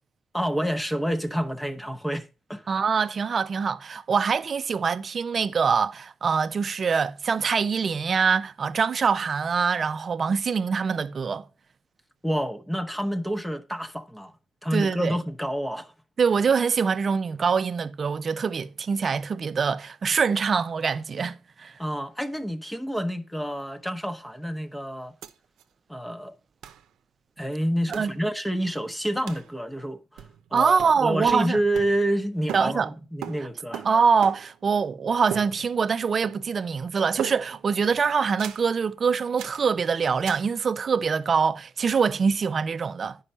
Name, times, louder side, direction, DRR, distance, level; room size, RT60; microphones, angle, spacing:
voice 1, 0.3-2.8 12.2-14.3 14.6-15.9 21.8-25.1 25.9-26.3 27.4-30.3 30.5-33.9, equal, 5° left, 0.9 m, -28 dB
voice 2, 2.7-11.5 14.7-15.2 16.2-21.7 27.9-28.1 30.5-31.6 32.5-32.9 33.8-43.2, right 5 dB, 45° right, 0.6 m, -24 dB
sound 1, 25.2-25.3 25.6-25.7 26.6-26.8 27.9-28.2 29.3-29.5 30.2-30.5 30.8-32.2 32.5-34.7 35.3-36.0 36.2-36.7 37.2-37.7 38.4-38.7 39.4-39.7 40.3-40.5, right 10 dB, 85° right, 0.7 m, -38 dB
9.7 x 5.5 x 5.4 m
cardioid pair, 90°, 0 cm